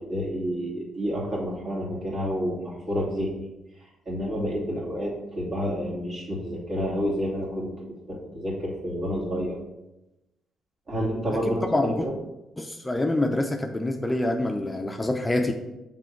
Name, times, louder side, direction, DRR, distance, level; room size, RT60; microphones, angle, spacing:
voice 1, 0.1-3.5 4.1-7.7 8.1-9.6 10.9-12.1, equal, 50° right, -4 dB, 2.4 m, -29 dB
voice 2, 11.4-12.1 12.6-15.5, left 1 dB, 15° left, 4 dB, 0.5 m, -26 dB
6.7 x 3.7 x 4.5 m, 0.97 s
cardioid pair, 90°, 0 cm